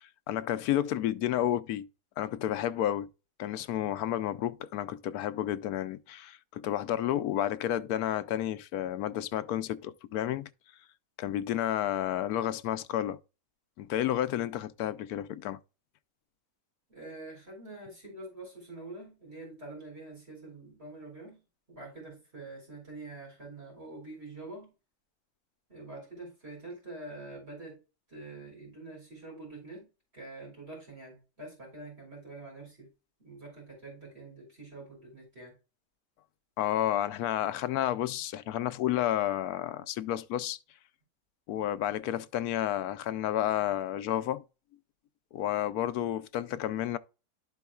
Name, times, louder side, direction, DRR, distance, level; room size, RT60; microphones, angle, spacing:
voice 1, 0.0-1.9 2.2-3.1 3.4-10.5 11.2-13.2 13.8-15.6 36.6-40.6 41.5-44.4 45.3-47.0, left 12 dB, 80° left, 1.1 m, -31 dB
voice 2, 16.9-24.7 25.7-27.8 28.1-32.9 33.2-35.6, right 2 dB, 40° right, 4.4 m, -46 dB
12.5 x 4.6 x 2.3 m
omnidirectional pair, 1.6 m